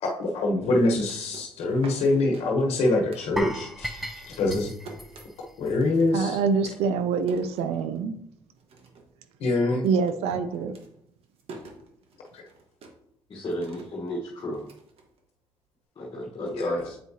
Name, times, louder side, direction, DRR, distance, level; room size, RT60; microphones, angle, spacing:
voice 1, 0.0-4.7 5.6-6.4 9.4-9.9 12.3-12.4 16.3-16.8, left 2 dB, 75° left, 0 dB, 1.1 m, -25 dB
sound 1, 0.9-3.8 4.1-8.2 8.6-9.2 9.4-15.7, right 3 dB, 65° right, 1.3 m, -48 dB
sound 2, 3.4-6.4 6.6-6.8 7.3-7.4, equal, ahead, 0.6 m, -37 dB
voice 2, 6.1-8.2 9.8-10.8, right 5 dB, 80° right, 10 dB, 0.5 m, -25 dB
voice 3, 13.3-14.6 15.9-17.0, equal, 45° left, -1 dB, 1.2 m, -33 dB
7.7 x 4.5 x 2.7 m, 0.75 s
supercardioid pair, 75°, 10 cm